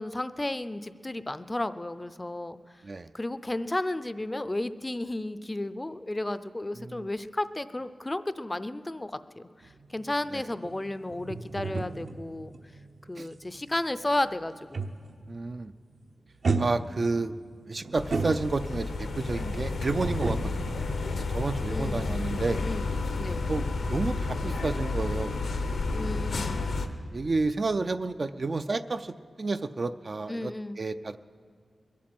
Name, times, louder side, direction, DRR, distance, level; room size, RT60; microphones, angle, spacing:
voice 1, 0.0-2.8 3.1-12.5 13.1-14.9 21.7-22.9 23.2-23.5 25.9-26.6 30.3-30.8, left 1 dB, 20° left, 13 dB, 0.5 m, -33 dB
sound 1, 9.6-15.3 15.6-15.9 16.4-18.9 20.0-21.9 22.2-22.4, right 3 dB, 60° right, 0.8 m, -34 dB
voice 2, 15.3-15.7 16.6-17.4 17.7-20.7 21.2-22.6 23.5-25.4 27.1-30.5 30.8-31.2, right 3 dB, 45° right, 10 dB, 0.4 m, -31 dB
sound 2, 18.0-26.9, left 3 dB, 85° left, 0.9 m, -31 dB
22.0 x 8.4 x 7.8 m, 2.1 s
wide cardioid pair, 110°, 0 cm